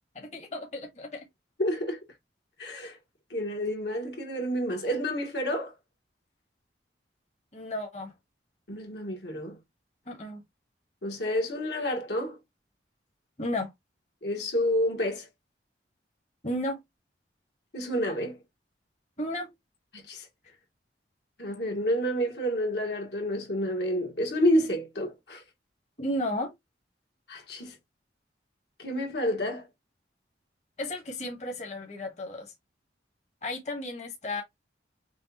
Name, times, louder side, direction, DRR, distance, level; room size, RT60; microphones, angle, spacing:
voice 1, 0.1-1.3 7.5-8.1 10.1-10.4 13.4-13.7 16.4-16.8 19.2-19.5 26.0-26.5 30.8-32.5 33.4-34.4, left 1 dB, 40° left, 1.3 m, -33 dB
voice 2, 1.6-2.0 2.6-3.0 3.3-5.7 8.7-9.6 11.0-12.4 14.2-15.3 17.7-18.4 19.9-20.3 21.4-25.4 27.3-27.7 28.8-29.7, equal, 65° left, 1.6 m, -29 dB
6.3 x 2.4 x 2.9 m
head